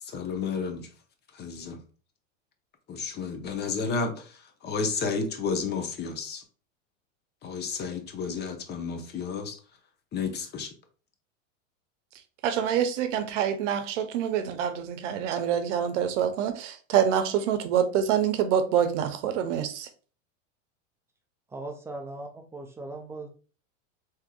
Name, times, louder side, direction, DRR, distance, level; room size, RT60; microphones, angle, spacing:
voice 1, 0.0-0.9 1.3-1.8 2.9-6.4 7.4-9.6 10.1-10.7, left 5 dB, 25° left, 0.7 m, -32 dB
voice 2, 12.4-19.9, right 9 dB, 70° right, 0.7 m, -26 dB
voice 3, 21.5-23.3, right 2 dB, 5° right, 0.3 m, -39 dB
3.6 x 2.9 x 2.3 m
hypercardioid pair, 105°, 38 cm